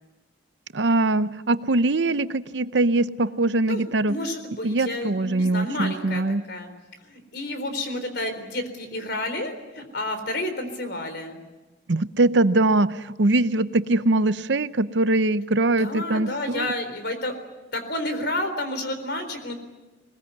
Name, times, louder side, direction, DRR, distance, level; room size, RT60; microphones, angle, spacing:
voice 1, 0.7-4.2 4.6-6.4 11.9-16.7, right 2 dB, 65° right, 13 dB, 0.8 m, -22 dB
voice 2, 4.1-6.2 6.5-6.7 7.0-11.4 15.8-17.3 17.7-19.5, left 1 dB, 55° left, 8 dB, 4.0 m, -30 dB
21.5 x 21.0 x 9.6 m, 1.1 s
head